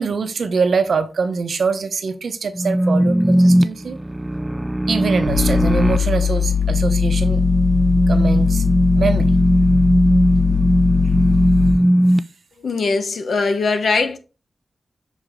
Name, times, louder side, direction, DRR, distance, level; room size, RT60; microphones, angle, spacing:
voice 1, 0.0-4.0 4.9-7.4 8.1-8.6 8.9-9.3 11.7-11.8, right 5 dB, 75° right, 0.9 m, -23 dB
sound 1, 2.6-12.2, equal, 10° right, 0.3 m, -18 dB
sound 2, 5.2-11.7, left 8 dB, 65° left, 2.1 m, -20 dB
voice 2, 12.6-14.2, left 4 dB, 80° left, 1.1 m, -20 dB
6.4 x 4.9 x 3.7 m
wide cardioid pair, 155°, 0 cm